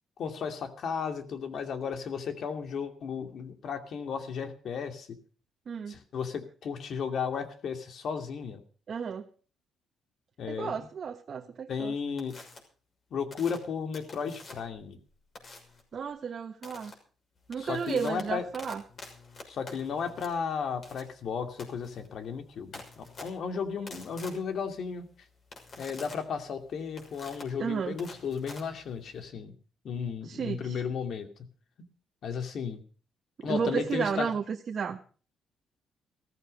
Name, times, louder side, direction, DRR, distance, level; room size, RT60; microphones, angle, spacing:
voice 1, 0.2-5.2 5.9-8.6 10.4-10.8 11.7-12.3 13.1-15.0 17.6-18.4 19.5-25.1 25.8-29.6 29.8-31.3 32.2-32.8 33.4-34.3, left 6 dB, 65° left, 7 dB, 2.5 m, -34 dB
voice 2, 8.9-9.3 10.5-11.9 15.9-16.9 17.5-18.8 27.6-28.0 30.2-30.8 33.4-35.0, right 6 dB, 50° right, 4 dB, 1.3 m, -33 dB
sound 1, 12.2-12.6 13.3-14.8 15.4-15.8 16.6-16.9 17.4-29.3, left 3 dB, 45° left, 6.3 m, -48 dB
15.5 x 14.0 x 5.3 m, 0.40 s
cardioid pair, 90°, 0 cm